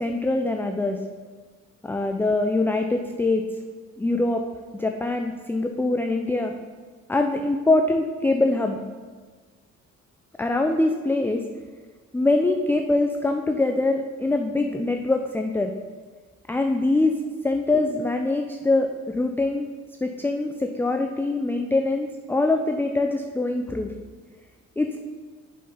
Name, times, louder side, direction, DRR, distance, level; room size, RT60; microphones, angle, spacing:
voice 1, 0.0-1.0 1.8-3.5 4.0-4.4 4.7-6.5 7.1-8.8 10.4-11.4 12.1-15.7 16.5-17.2 17.4-19.7 20.0-23.9 24.8-25.0, left 2 dB, 5° left, 4 dB, 0.4 m, -23 dB
6.5 x 5.7 x 5.5 m, 1.5 s
cardioid pair, 90°, 30 cm